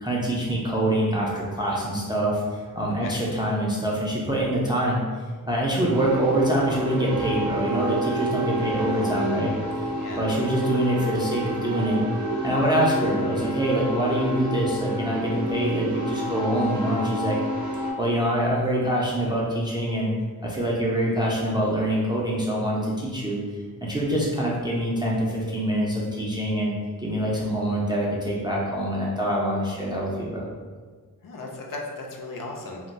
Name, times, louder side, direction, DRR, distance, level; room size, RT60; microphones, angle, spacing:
voice 1, 0.0-5.0 5.5-9.5 10.2-12.0 12.4-17.4 18.0-20.1 20.4-23.4 23.8-26.7 27.0-30.4, right 1 dB, 15° right, -4 dB, 0.3 m, -25 dB
voice 2, 2.9-3.3 8.6-9.2 9.9-10.2 31.2-32.8, left 2 dB, 60° left, 0 dB, 0.5 m, -37 dB
sound 1, 5.9-17.9, right 1 dB, 45° right, 0.7 m, -29 dB
2.2 x 2.2 x 3.9 m, 1.5 s
wide cardioid pair, 135°, 37 cm